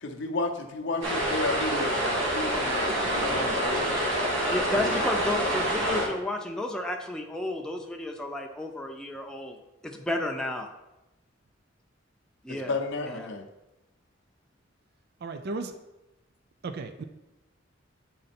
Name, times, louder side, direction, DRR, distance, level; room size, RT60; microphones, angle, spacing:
voice 1, 0.0-4.0 4.7-4.9 5.9-6.0 12.5-13.5, left 3 dB, 65° left, 4 dB, 0.6 m, -33 dB
sound 1, 1.0-6.1, equal, 80° right, 1.6 m, -27 dB
voice 2, 4.5-9.6 9.8-10.7 12.4-12.7 13.0-13.3, left 1 dB, 5° left, 1 dB, 0.6 m, -32 dB
voice 3, 15.2-15.7 16.6-17.0, right 3 dB, 55° right, 8 dB, 0.4 m, -34 dB
7.8 x 3.9 x 4.2 m, 0.97 s
head